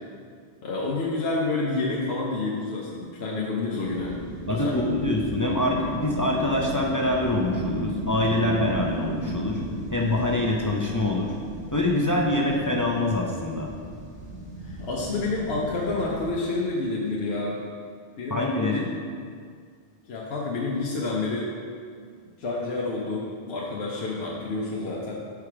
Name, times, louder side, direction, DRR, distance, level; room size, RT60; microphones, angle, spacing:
voice 1, 0.6-4.2 4.5-4.8 14.6-17.6 18.2-18.8 20.1-21.5 22.4-25.1, left 3 dB, 70° left, -4 dB, 1.0 m, -29 dB
sound 1, 3.8-16.3, right 1 dB, 5° left, 1.3 m, -35 dB
voice 2, 4.5-9.6 9.9-11.3 11.7-13.7 18.3-18.9, left 1 dB, 30° left, -2 dB, 0.3 m, -25 dB
4.8 x 4.8 x 5.8 m, 2.1 s
omnidirectional pair, 1.1 m